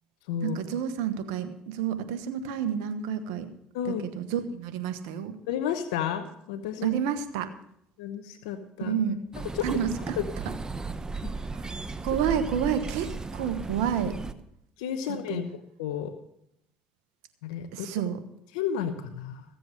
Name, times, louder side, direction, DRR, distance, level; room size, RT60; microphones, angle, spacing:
voice 1, 0.4-3.5 3.8-5.3 6.8-7.5 8.8-9.2 9.6-10.2 11.5-14.2 15.3-15.4 17.7-18.2, right 8 dB, 85° right, 9 dB, 1.2 m, -29 dB
voice 2, 3.7-4.1 5.5-6.9 8.0-8.9 9.4-9.6 10.2-10.3 11.2-11.3 14.8-16.1 17.4-17.9 18.5-19.4, left 9 dB, 90° left, 9 dB, 0.9 m, -32 dB
sound 1, 9.3-14.3, right 3 dB, 20° right, 1.0 m, -35 dB
15.0 x 7.8 x 6.6 m, 0.73 s
supercardioid pair, 70°, 3 cm